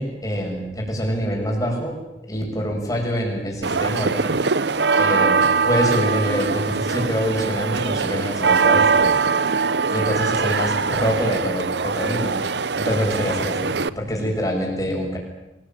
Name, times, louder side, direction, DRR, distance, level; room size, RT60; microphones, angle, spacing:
voice 1, 0.0-1.9 2.3-4.3 5.0-9.2 9.9-12.4 12.8-15.2, equal, 20° left, 0 dB, 7.2 m, -25 dB
sound 1, 3.6-13.9, right 5 dB, 65° right, 0.8 m, -21 dB
26.0 x 20.0 x 9.1 m, 0.95 s
head